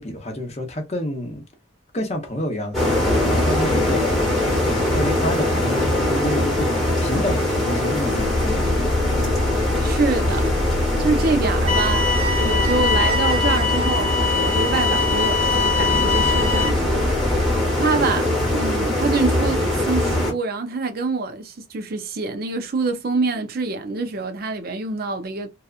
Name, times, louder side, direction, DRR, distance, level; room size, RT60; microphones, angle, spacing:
voice 1, 0.0-1.4 1.9-6.7 7.0-8.9, left 1 dB, 30° left, 0.7 m, -29 dB
sound 1, 2.7-20.3, left 1 dB, ahead, 1.0 m, -22 dB
sound 2, 8.1-17.6, left 2 dB, 80° left, 0.7 m, -27 dB
voice 2, 9.8-10.5 11.0-12.1 12.4-14.1 14.3-17.2 17.8-25.5, right 3 dB, 45° right, 0.5 m, -25 dB
sound 3, 11.7-16.7, left 4 dB, 30° right, 1.0 m, -23 dB
2.7 x 2.3 x 2.3 m
head